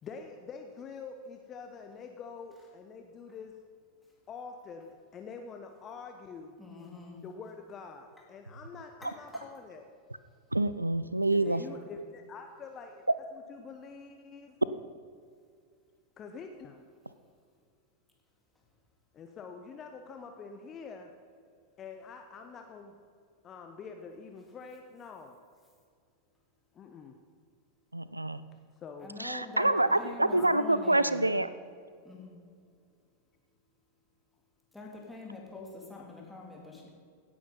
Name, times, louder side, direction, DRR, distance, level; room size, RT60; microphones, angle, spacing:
voice 1, 0.0-3.5 4.3-6.5 7.2-9.9 11.4-13.0 13.3-14.6 16.2-16.9 19.1-21.1 21.8-23.0 23.4-25.4 26.7-27.2 28.8-29.1 30.3-30.5, left 5 dB, 25° left, 5 dB, 1.0 m, -46 dB
voice 2, 6.6-7.2 9.0-9.4 11.3-11.8 29.0-29.7 29.9-31.4 32.0-32.3 34.7-36.9, left 3 dB, 5° left, -2 dB, 3.4 m, -45 dB
voice 3, 10.5-11.6 27.9-28.4 29.2-31.5, right 2 dB, 85° right, 14 dB, 0.4 m, -27 dB
16.5 x 10.0 x 5.5 m, 2.2 s
figure-of-eight pair, 90°, 0 cm